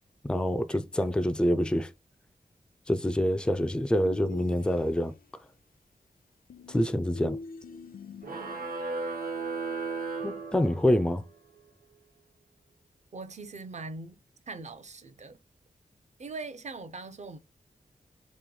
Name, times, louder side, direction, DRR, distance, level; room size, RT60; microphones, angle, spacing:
voice 1, 0.2-1.9 2.9-5.2 6.7-7.4 10.2-11.2, equal, 5° left, 0.4 m, -26 dB
sound 1, 4.0-5.3 6.5-8.7, left 5 dB, 65° left, 0.5 m, -44 dB
sound 2, 8.2-11.1, right 4 dB, 70° right, 1.3 m, -35 dB
voice 2, 13.1-14.2 14.5-15.4 16.2-17.4, right 3 dB, 50° right, 0.6 m, -41 dB
3.3 x 3.1 x 3.8 m
wide cardioid pair, 100°, 16 cm